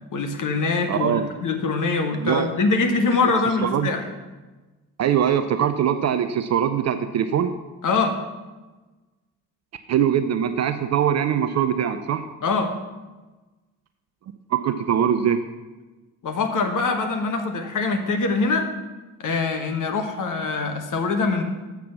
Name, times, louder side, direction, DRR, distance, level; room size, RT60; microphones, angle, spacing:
voice 1, 0.1-4.0 7.8-8.2 12.4-12.7 16.2-18.7 19.2-21.4, left 4 dB, 40° left, 5 dB, 1.3 m, -23 dB
voice 2, 0.9-1.3 2.2-2.5 3.2-3.3 3.6-3.9 5.0-7.6 9.9-12.2 14.5-15.4, right 9 dB, 35° right, 10 dB, 0.5 m, -22 dB
7.5 x 5.9 x 6.9 m, 1.2 s
figure-of-eight pair, 40°, 47 cm